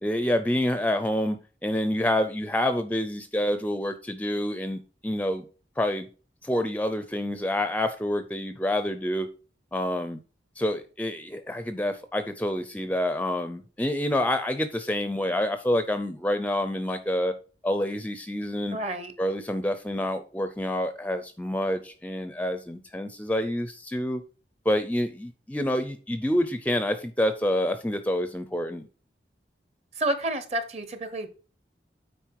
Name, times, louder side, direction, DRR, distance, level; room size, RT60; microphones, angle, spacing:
voice 1, 0.0-5.4 5.8-6.1 6.4-9.3 9.7-10.2 10.6-17.3 17.6-18.8 19.2-24.2 24.7-28.9, left 1 dB, 10° left, 9 dB, 0.5 m, -27 dB
voice 2, 18.7-19.1 29.9-31.3, right 1 dB, 35° right, 10 dB, 1.0 m, -29 dB
9.2 x 4.3 x 4.7 m, 0.36 s
head